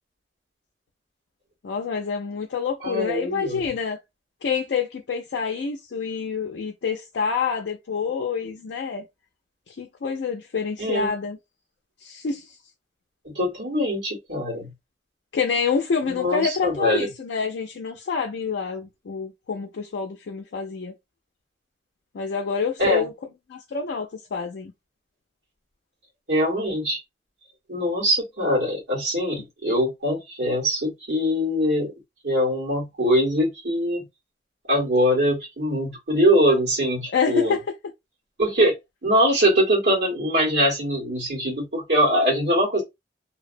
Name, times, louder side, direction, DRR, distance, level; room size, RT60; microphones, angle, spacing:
voice 1, 1.6-4.0 4.4-9.1 9.7-11.4 12.0-12.6 15.3-20.9 22.1-23.1 23.5-24.7 37.1-37.6, left 5 dB, 90° left, 0.4 m, -27 dB
voice 2, 2.8-3.6 10.8-11.1 13.2-14.7 16.0-17.1 22.8-23.0 26.3-27.0 27.7-31.9 32.2-34.0 34.7-37.6 38.4-38.7 39.0-42.8, equal, 70° right, 1.4 m, -22 dB
2.6 x 2.0 x 2.5 m
head